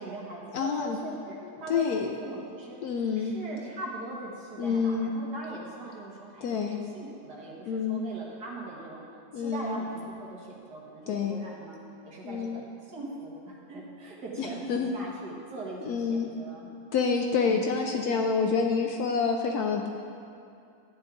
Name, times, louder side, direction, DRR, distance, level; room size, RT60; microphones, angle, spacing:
voice 1, 0.0-2.8 3.2-9.0 9.3-16.7 17.4-17.6, right 2 dB, 65° right, -4 dB, 2.2 m, -41 dB
voice 2, 0.5-1.0 1.7-2.1 2.8-3.4 4.6-5.1 6.4-6.8 7.7-8.0 9.3-9.8 11.1-11.4 12.2-12.6 14.4-14.9 15.8-16.3 16.9-19.9, left 5 dB, 70° left, 3 dB, 1.1 m, -28 dB
13.0 x 9.3 x 3.8 m, 2.5 s
omnidirectional pair, 1.9 m